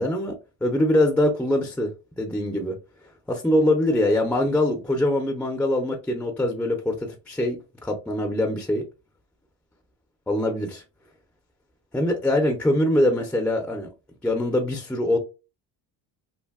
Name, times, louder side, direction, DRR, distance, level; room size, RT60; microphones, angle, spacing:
voice 1, 0.0-1.9 2.2-2.8 3.3-8.8 10.3-10.8 11.9-13.9 14.2-15.2, left 1 dB, 5° left, 0.4 m, -23 dB
2.7 x 2.5 x 2.3 m
cardioid pair, 100°, 43 cm